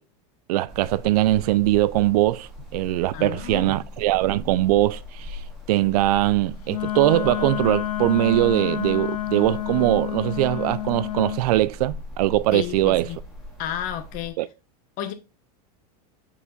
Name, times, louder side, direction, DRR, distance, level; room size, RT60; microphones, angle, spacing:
voice 1, 0.5-5.4 5.7-13.1 14.4-14.5, right 15 dB, 70° right, 0.4 m, -21 dB
sound 1, 0.7-14.3, left 2 dB, ahead, 1.9 m, -40 dB
voice 2, 3.1-3.8 12.5-13.2 13.6-14.4 15.0-15.1, left 10 dB, 40° left, 1.1 m, -32 dB
Wind instrument woodwind instrument, 6.7-11.4, left 14 dB, 70° left, 0.6 m, -29 dB
5.7 x 4.8 x 4.0 m
supercardioid pair, 150°, 20 cm